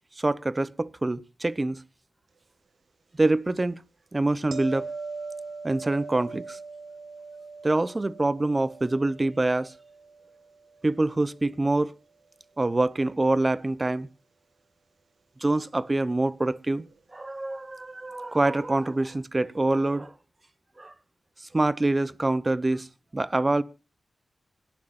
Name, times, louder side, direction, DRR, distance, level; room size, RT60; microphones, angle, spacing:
voice 1, 0.2-1.8 3.2-3.8 4.1-4.9 5.6-6.6 7.6-9.7 10.8-11.9 12.6-14.1 15.4-16.9 17.1-20.1 20.8-20.9 21.5-22.9 23.1-23.6, right 2 dB, 25° right, 0.8 m, -25 dB
sound 1, 4.5-11.5 16.8-16.9, right 4 dB, 75° right, 1.9 m, -41 dB
25.5 x 11.5 x 2.5 m
wide cardioid pair, 95°, 0 cm